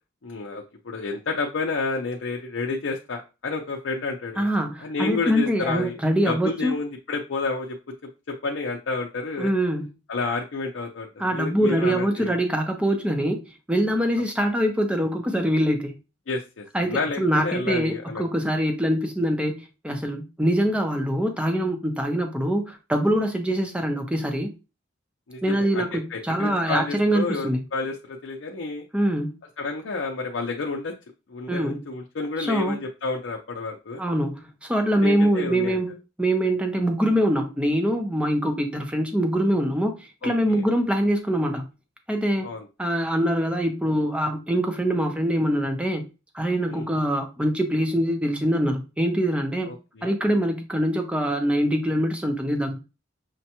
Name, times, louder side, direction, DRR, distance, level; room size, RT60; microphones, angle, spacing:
voice 1, 0.2-4.5 4.8-5.9 6.3-7.8 8.3-9.5 10.1-12.3 16.3-18.3 25.3-28.8 29.6-30.9 31.3-34.0 35.0-35.8 40.2-40.6 42.4-42.6 46.7-46.9 49.6-50.2, left 3 dB, 70° left, 0.6 m, -30 dB
voice 2, 4.4-6.7 9.4-9.9 11.2-13.4 13.7-15.9 16.7-19.6 19.8-24.5 25.4-27.6 28.9-29.4 31.5-31.8 32.5-32.8 34.0-35.9 36.2-41.7 42.1-42.5 42.8-46.0 46.3-49.7 50.0-52.8, equal, 5° right, 0.6 m, -24 dB
6.4 x 2.2 x 2.9 m
head